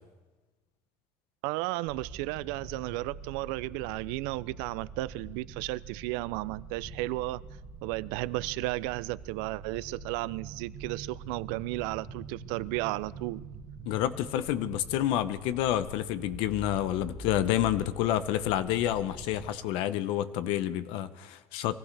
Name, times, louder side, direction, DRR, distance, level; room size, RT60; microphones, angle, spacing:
voice 1, 1.4-7.4 7.8-13.4, right 20 dB, 85° right, 0.4 m, -34 dB
sound 1, 1.9-19.5, right 4 dB, 60° right, 2.0 m, -45 dB
voice 2, 13.9-21.8, left 12 dB, 60° left, 0.7 m, -29 dB
23.5 x 15.5 x 3.3 m
cardioid pair, 180°, 10 cm